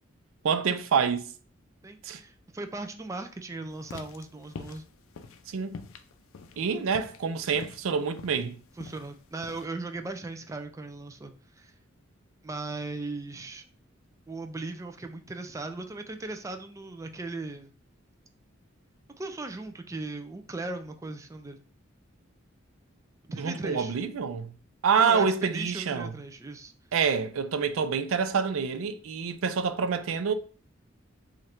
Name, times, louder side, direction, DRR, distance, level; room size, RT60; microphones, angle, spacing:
voice 1, 0.4-1.3 2.0-2.2 5.5-5.8 6.6-8.5 23.4-24.5 24.8-26.1 26.9-30.3, right 6 dB, 90° right, 0.4 m, -27 dB
voice 2, 1.8-4.9 8.8-11.7 12.4-13.6 14.3-17.7 19.2-21.6 23.3-24.0 25.0-26.7, right 2 dB, 15° right, 0.3 m, -38 dB
sound 1, 3.8-9.6, left 4 dB, 85° left, 0.4 m, -45 dB
3.1 x 2.5 x 4.3 m
head